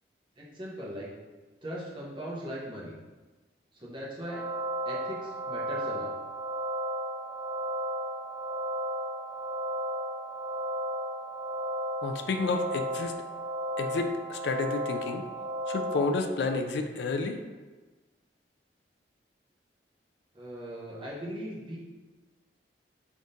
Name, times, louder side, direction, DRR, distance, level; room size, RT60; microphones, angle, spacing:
voice 1, 0.4-1.1 1.6-3.0 3.7-4.5 4.9-6.1 20.3-21.8, equal, 25° right, -6 dB, 0.8 m, -39 dB
sound 1, 4.2-16.0, equal, 5° right, 0.3 m, -34 dB
voice 2, 12.0-13.1 13.8-15.2 15.7-17.4, left 3 dB, 70° left, 5 dB, 0.4 m, -30 dB
3.7 x 3.5 x 2.7 m, 1.3 s
head